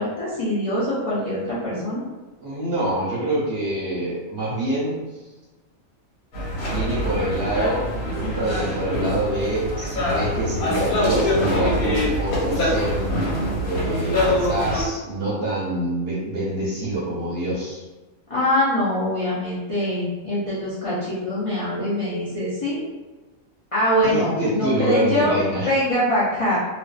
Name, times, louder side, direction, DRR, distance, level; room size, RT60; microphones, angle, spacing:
voice 1, 0.0-2.0 18.3-22.8 23.7-25.4 25.7-26.6, left 1 dB, 55° left, -10 dB, 0.3 m, -23 dB
voice 2, 2.4-5.0 6.6-13.1 13.6-17.8 24.0-25.7, right 1 dB, 55° right, -6 dB, 0.8 m, -26 dB
sound 1, 6.3-14.8, left 1 dB, 80° left, 1.3 m, -24 dB
2.5 x 2.3 x 2.3 m, 1.2 s
omnidirectional pair, 1.5 m